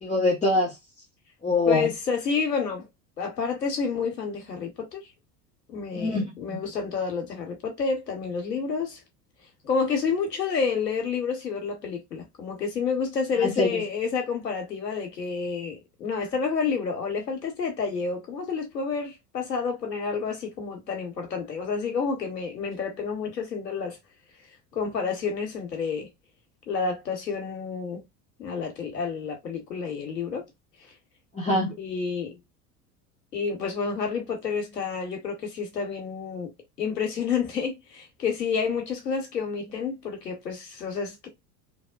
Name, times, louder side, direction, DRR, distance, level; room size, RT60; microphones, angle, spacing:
voice 1, 0.0-0.8 1.4-1.9 6.0-6.6 13.3-13.8 31.3-31.7, left 2 dB, 15° left, 0.8 m, -24 dB
voice 2, 1.7-2.9 3.2-5.0 5.7-9.0 9.6-24.0 24.7-26.1 26.7-28.0 28.4-30.5 31.8-32.4 33.3-36.5 36.8-41.3, left 5 dB, 90° left, 1.0 m, -29 dB
2.9 x 2.1 x 2.4 m
figure-of-eight pair, 75°, 47 cm